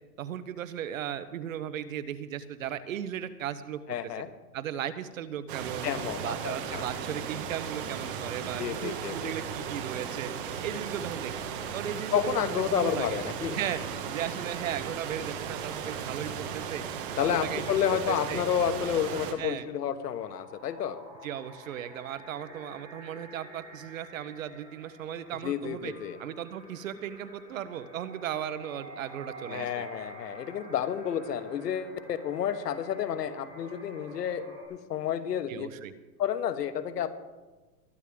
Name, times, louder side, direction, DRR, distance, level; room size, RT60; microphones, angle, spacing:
voice 1, 0.2-4.1 4.5-5.9 6.2-10.3 10.6-11.4 11.7-13.2 13.5-16.8 17.2-18.4 19.4-19.7 21.2-25.9 26.2-29.8 35.5-35.9, right 10 dB, 55° right, 13 dB, 0.9 m, -36 dB
voice 2, 3.9-4.3 5.8-6.8 8.6-9.3 12.1-13.6 17.2-21.0 25.4-26.2 29.5-34.4 34.7-35.7 36.2-37.1, left 9 dB, 80° left, 10 dB, 1.4 m, -30 dB
sound 1, 5.5-19.3, right 7 dB, 35° right, 1.3 m, -36 dB
sound 2, 20.0-34.6, right 1 dB, 10° right, 5.7 m, -49 dB
21.5 x 10.0 x 3.6 m, 1.2 s
hypercardioid pair, 170°, 48 cm